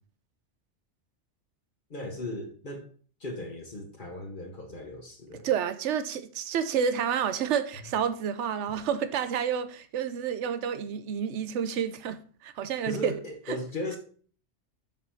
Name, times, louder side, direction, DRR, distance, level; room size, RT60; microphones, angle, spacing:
voice 1, 1.9-2.9 3.2-5.5 12.8-14.0, left 1 dB, 45° left, 1.5 m, -36 dB
voice 2, 5.4-13.1 13.5-13.6, right 8 dB, 85° right, 1.0 m, -29 dB
7.2 x 4.9 x 5.7 m
omnidirectional pair, 1.2 m